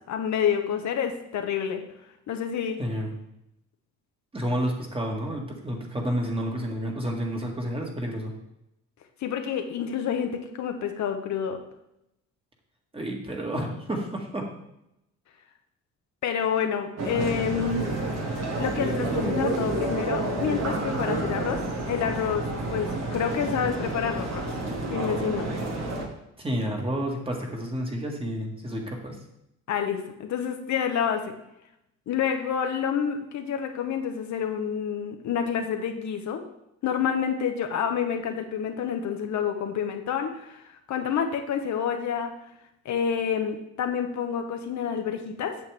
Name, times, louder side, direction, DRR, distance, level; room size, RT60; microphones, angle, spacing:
voice 1, 0.1-1.8 2.3-2.8 9.2-11.6 16.2-18.0 18.6-24.5 24.9-25.5 29.7-31.3 32.1-36.4 36.8-42.4 42.8-45.6, left 7 dB, 70° left, 5 dB, 1.0 m, -28 dB
voice 2, 2.8-3.2 4.3-8.3 12.9-14.5 26.4-29.2, equal, 20° right, 0 dB, 1.8 m, -30 dB
sound 1, 17.0-26.1, right 2 dB, 60° right, 1.7 m, -29 dB
8.4 x 6.7 x 3.4 m, 0.84 s
cardioid pair, 90°, 30 cm